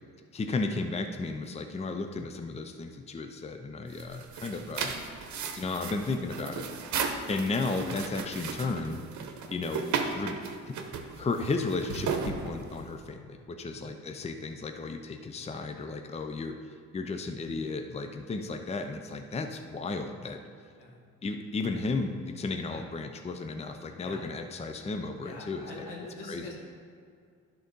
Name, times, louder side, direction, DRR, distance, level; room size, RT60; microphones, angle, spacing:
voice 1, 0.3-4.9 5.6-6.7 7.3-9.0 9.5-9.8 10.1-10.4 10.7-10.8 11.2-16.6 16.9-20.4 21.2-25.7 26.3-26.4, left 3 dB, 20° left, 6 dB, 0.5 m, -34 dB
sound 1, 3.9-13.0, right 5 dB, 70° right, 0.9 m, -35 dB
voice 2, 13.7-14.0 20.7-21.0 22.7-22.9 24.0-24.3 25.2-26.5, left 2 dB, 85° left, -3 dB, 2.0 m, -44 dB
11.5 x 3.9 x 5.3 m, 2.2 s
cardioid pair, 90°, 30 cm